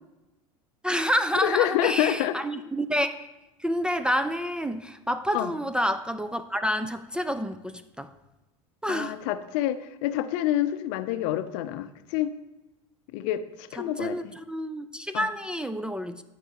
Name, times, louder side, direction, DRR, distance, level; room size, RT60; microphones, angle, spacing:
voice 1, 0.8-3.3 3.6-8.1 8.8-9.2 13.7-16.2, equal, 5° right, 10 dB, 0.4 m, -28 dB
voice 2, 1.4-2.3 5.3-5.5 8.9-12.3 13.1-14.3 15.1-15.3, left 12 dB, 60° left, 11 dB, 0.6 m, -27 dB
14.0 x 4.8 x 2.9 m, 1.0 s
hypercardioid pair, 95°, 17 cm